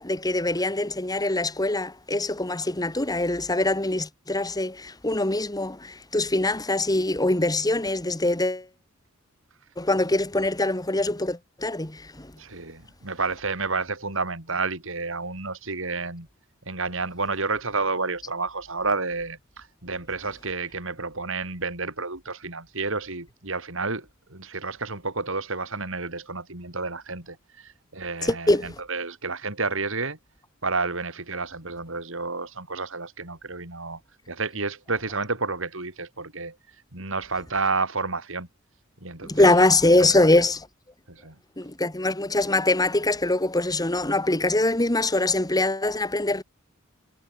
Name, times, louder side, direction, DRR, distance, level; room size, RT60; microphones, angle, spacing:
voice 1, 0.0-8.7 9.8-12.3 28.2-28.7 39.2-40.7 41.6-46.4, left 2 dB, 20° left, 2.1 m, -23 dB
voice 2, 12.4-16.3 16.7-30.2 30.6-34.0 34.3-36.5 36.9-38.5 39.0-39.5 40.0-40.1 41.1-41.3, right 4 dB, 65° right, 4.7 m, -30 dB
head